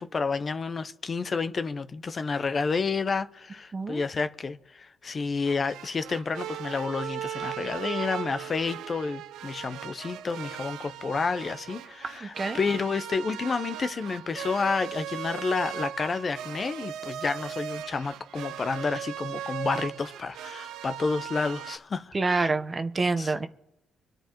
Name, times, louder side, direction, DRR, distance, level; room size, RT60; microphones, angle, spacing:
voice 1, 0.0-22.5 23.2-23.3, left 4 dB, 40° left, 0.6 m, -30 dB
sound 1, 5.4-21.8, right 11 dB, 85° right, 0.4 m, -38 dB
voice 2, 12.2-12.6 22.1-23.5, right 3 dB, 30° right, 0.8 m, -27 dB
25.5 x 10.0 x 3.0 m
cardioid pair, 90°, 0 cm